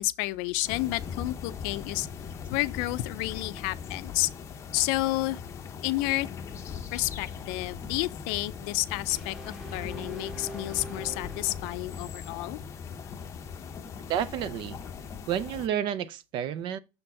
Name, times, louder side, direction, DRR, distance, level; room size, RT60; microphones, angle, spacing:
voice 1, 0.0-2.1 2.5-4.3 4.7-5.4 5.8-6.3 6.9-12.6, left 19 dB, 80° left, 0.5 m, -30 dB
sound 1, 0.6-15.7, left 6 dB, 30° left, 0.7 m, -40 dB
sound 2, 9.1-12.1, equal, ahead, 1.0 m, -43 dB
voice 2, 14.1-14.8 15.3-16.8, right 10 dB, 50° right, 0.5 m, -30 dB
6.5 x 4.4 x 4.1 m
cardioid pair, 160°, 11 cm